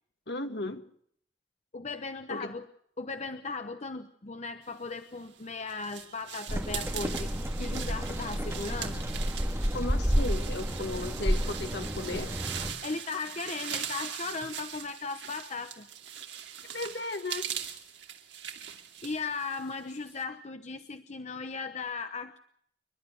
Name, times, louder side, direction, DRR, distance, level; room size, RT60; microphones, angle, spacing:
voice 1, 0.3-0.8 2.3-2.5 9.7-12.3 16.7-17.5, left 2 dB, 70° left, 7 dB, 2.1 m, -35 dB
voice 2, 1.7-2.7 3.0-9.0 12.8-15.9 19.0-22.4, left 4 dB, 40° left, 8 dB, 1.0 m, -37 dB
sound 1, 5.1-20.2, right 9 dB, 85° right, 2.7 m, -41 dB
sound 2, 6.5-12.7, equal, 15° right, 2.7 m, -31 dB
28.5 x 12.0 x 7.7 m, 0.65 s
head